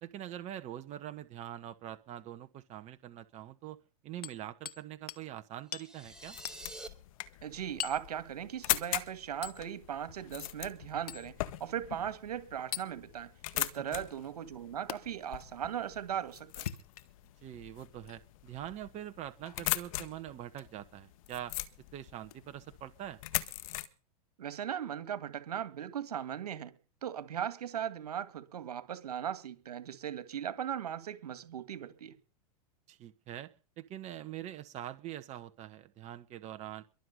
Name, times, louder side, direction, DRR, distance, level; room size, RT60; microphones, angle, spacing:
voice 1, 0.0-3.8 4.0-6.4 17.4-21.6 21.9-23.2 32.9-33.5 33.8-36.8, right 12 dB, 35° right, 1.3 m, -44 dB
Hammer, 4.2-4.8 5.1-5.3 5.7-5.9 6.4-6.6 7.8-8.1 9.4-9.6 11.1-11.3 12.7-12.9 14.9-15.0 16.5-17.3 18.0-18.2 19.4-19.6 20.5-20.7 22.3-22.4, left 11 dB, 80° left, 1.6 m, -41 dB
sound 1, 5.7-6.9, right 2 dB, 5° right, 2.6 m, -47 dB
sound 2, 6.0-23.9, left 16 dB, 60° left, 1.7 m, -40 dB
voice 2, 7.4-16.7 24.4-26.7 27.0-32.1, right 9 dB, 85° right, 2.2 m, -38 dB
23.5 x 8.0 x 5.4 m
hypercardioid pair, 115°, 19 cm